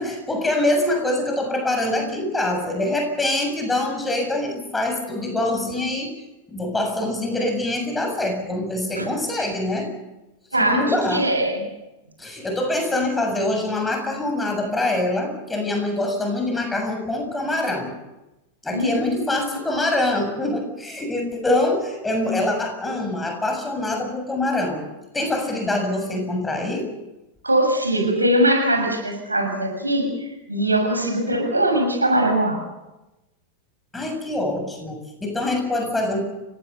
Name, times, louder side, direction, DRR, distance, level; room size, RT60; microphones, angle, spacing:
voice 1, 0.0-6.1 6.5-9.9 10.6-11.2 12.2-17.9 18.6-24.8 25.1-26.9 33.9-36.3, left 1 dB, 10° left, 3 dB, 7.2 m, -24 dB
voice 2, 10.5-11.6 18.7-19.6 27.4-32.6, right 1 dB, 80° right, 3 dB, 6.9 m, -21 dB
30.0 x 17.5 x 7.0 m, 0.99 s
figure-of-eight pair, 90°, 0 cm